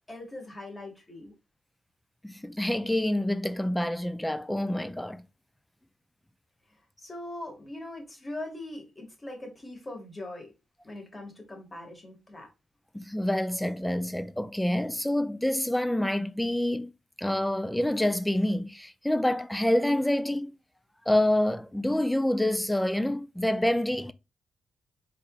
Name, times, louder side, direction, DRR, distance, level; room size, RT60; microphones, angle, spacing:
voice 1, 0.1-1.3 7.0-10.5 10.8-12.5, left 1 dB, 20° left, 1.9 m, -41 dB
voice 2, 2.2-5.2 12.9-16.9 17.2-20.6 21.1-24.1, left 1 dB, 5° left, 0.3 m, -27 dB
4.1 x 3.7 x 2.4 m
cardioid pair, 100°, 0 cm